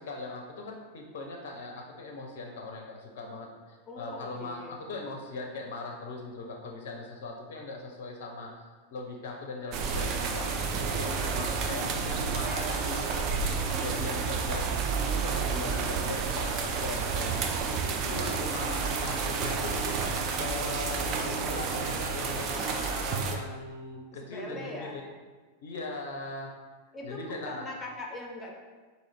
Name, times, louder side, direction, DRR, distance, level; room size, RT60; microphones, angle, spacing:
voice 1, 0.0-8.5 8.9-13.3 13.7-14.6 15.0-17.4 17.8-20.0 20.3-25.0 25.6-26.5 27.0-27.7, left 2 dB, 55° left, 1 dB, 0.5 m, -39 dB
voice 2, 3.9-4.8 24.3-25.0 26.9-28.5, left 2 dB, 15° left, 0 dB, 0.7 m, -41 dB
sound 1, 9.7-23.4, right 5 dB, 40° right, 0.4 m, -30 dB
3.9 x 2.6 x 3.3 m, 1.4 s
figure-of-eight pair, 90°, 0 cm